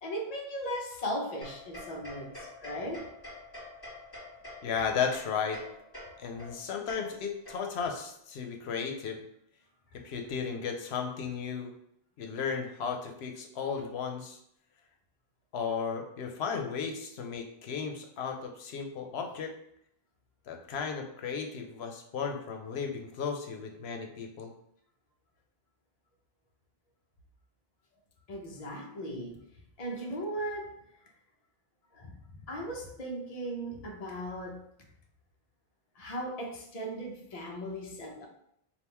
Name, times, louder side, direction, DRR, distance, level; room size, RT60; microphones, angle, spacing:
voice 1, 0.0-3.1 28.3-29.4 29.8-30.8 31.9-32.1 32.5-34.6 36.0-38.3, equal, 40° left, 1 dB, 0.7 m, -37 dB
sound 1, 1.4-8.0, left 2 dB, 20° left, 1.3 m, -47 dB
voice 2, 4.6-5.6 6.2-9.2 10.0-11.7 12.2-14.4 15.5-19.5 20.5-24.5, left 6 dB, 90° left, 3 dB, 0.9 m, -34 dB
3.6 x 2.4 x 4.4 m, 0.72 s
omnidirectional pair, 1.0 m